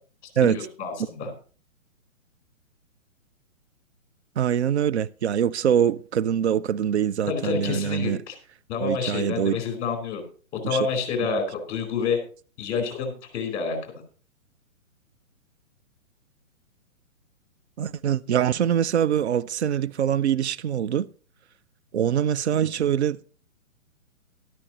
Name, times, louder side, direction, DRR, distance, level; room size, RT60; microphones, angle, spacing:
voice 1, 0.5-1.3 7.3-8.3 8.7-10.2 10.5-12.2 12.6-13.9, left 5 dB, 30° left, 4.3 m, -28 dB
voice 2, 4.4-8.2 8.8-9.6 10.6-10.9 17.8-21.1 21.9-23.3, right 9 dB, 55° right, 0.5 m, -24 dB
13.5 x 12.5 x 2.9 m
hypercardioid pair, 140°, 42 cm